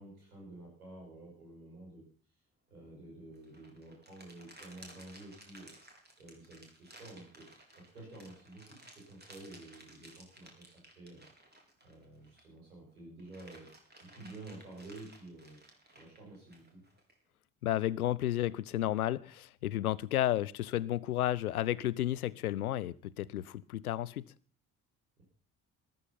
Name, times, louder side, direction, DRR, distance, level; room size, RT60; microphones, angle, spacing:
voice 1, 0.0-2.0 2.7-5.7 6.2-11.2 11.8-13.7 14.0-15.6 15.9-16.8 25.2-25.3, right 2 dB, 80° right, -2 dB, 5.8 m, -51 dB
sound 1, 3.3-12.6 13.0-17.1, right 1 dB, 25° right, 4.3 m, -57 dB
voice 2, 17.6-24.3, left 13 dB, 80° left, 21 dB, 0.6 m, -32 dB
14.0 x 12.5 x 5.6 m, 0.42 s
figure-of-eight pair, 45°, 43 cm